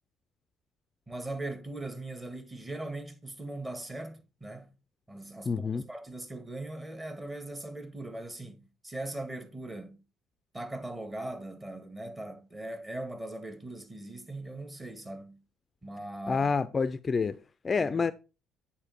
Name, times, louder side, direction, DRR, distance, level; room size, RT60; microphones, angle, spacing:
voice 1, 1.1-4.7 5.1-10.0 10.5-15.4 15.8-16.4 17.8-18.1, right 2 dB, 20° right, 1.6 m, -40 dB
voice 2, 5.5-5.8 16.3-17.4 17.6-18.1, left 5 dB, 35° left, 0.4 m, -28 dB
8.8 x 4.3 x 4.2 m
hypercardioid pair, 55°, 0 cm